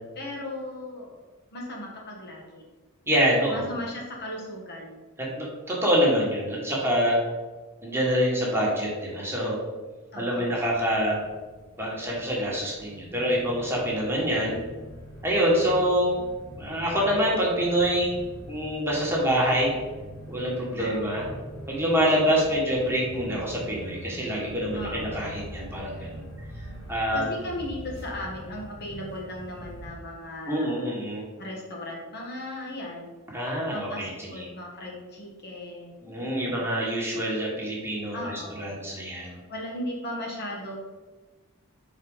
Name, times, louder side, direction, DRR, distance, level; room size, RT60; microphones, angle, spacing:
voice 1, 0.1-1.2 1.5-2.6 3.5-5.0 10.1-10.6 15.8-15.9 20.8-21.2 24.7-25.4 25.9-26.0 27.1-30.9 31.4-33.2 33.7-36.6 38.1-38.8 39.2-40.8, left 1 dB, 50° left, -2 dB, 1.3 m, -37 dB
voice 2, 3.1-3.7 5.2-7.2 7.8-9.6 10.2-11.2 11.8-14.6 15.2-16.2 16.5-18.2 18.5-19.8 20.3-21.3 21.7-26.2 26.9-27.4 30.5-31.2 33.3-34.5 36.0-38.2 38.6-39.4, equal, 10° right, -4 dB, 1.6 m, -26 dB
sound 1, 10.4-29.9, right 1 dB, 20° left, 1.7 m, -43 dB
4.9 x 4.2 x 5.4 m, 1.3 s
head